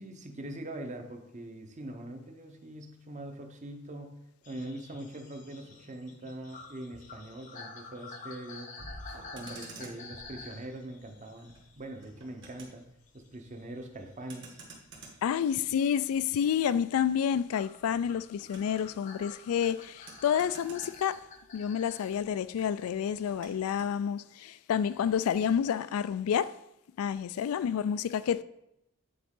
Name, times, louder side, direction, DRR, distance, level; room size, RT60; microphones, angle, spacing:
voice 1, 0.0-4.2 4.4-8.7 9.3-12.8 13.1-14.6, right 1 dB, 35° right, 0.7 m, -42 dB
sound 1, 4.4-12.7 13.1-15.4 15.9-16.3 17.5-22.1 23.5-23.6, left 3 dB, 35° left, 0.7 m, -49 dB
sound 2, 8.8-9.5 10.0-11.0, equal, 75° right, 1.4 m, -48 dB
Motor vehicle (road), 9.2-21.8 22.0-24.0, right 3 dB, 55° right, 1.5 m, -54 dB
voice 2, 15.2-21.2 21.5-26.5 27.0-28.4, left 8 dB, 75° left, 0.3 m, -29 dB
8.6 x 3.9 x 3.7 m
head